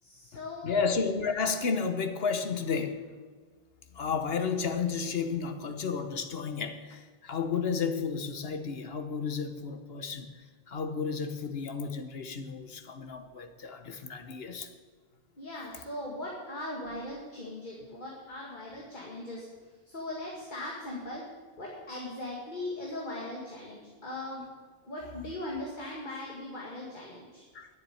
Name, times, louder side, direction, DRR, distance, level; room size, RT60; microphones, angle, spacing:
voice 1, 0.0-0.8 15.4-19.5 19.9-21.2 21.6-24.4 24.8-27.5, left 1 dB, 45° left, -3 dB, 2.0 m, -39 dB
voice 2, 0.6-3.1 3.9-10.3 10.7-14.7 16.9-17.0 27.5-27.7, left 5 dB, 60° left, 8 dB, 1.2 m, -32 dB
10.5 x 7.2 x 9.3 m, 1.4 s
omnidirectional pair, 1.1 m